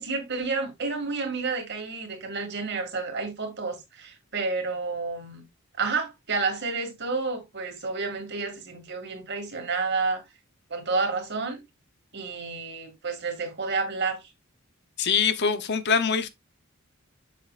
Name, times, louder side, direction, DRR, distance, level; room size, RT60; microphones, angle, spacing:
voice 1, 0.0-5.4 5.8-10.2 10.7-11.6 12.1-14.2, right 4 dB, 55° right, 2.3 m, -30 dB
voice 2, 15.0-16.3, left 6 dB, 55° left, 0.8 m, -23 dB
7.4 x 7.0 x 2.5 m
head